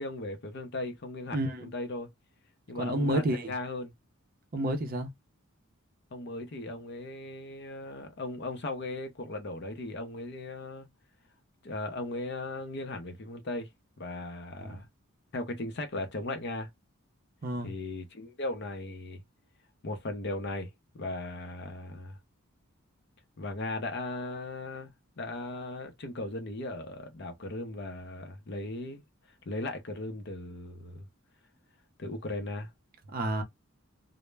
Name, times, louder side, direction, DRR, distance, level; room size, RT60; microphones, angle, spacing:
voice 1, 0.0-2.1 2.7-3.9 6.1-10.9 11.6-13.7 14.0-14.9 15.3-16.7 17.6-19.2 19.8-20.7 20.9-22.2 23.4-29.0 29.5-31.1 32.0-32.7, left 2 dB, 50° left, 0.5 m, -37 dB
voice 2, 1.3-1.7 2.7-3.5 4.5-5.1 14.6-14.8 17.4-17.7 33.1-33.4, right 1 dB, 45° right, 0.5 m, -30 dB
2.1 x 2.0 x 3.2 m
head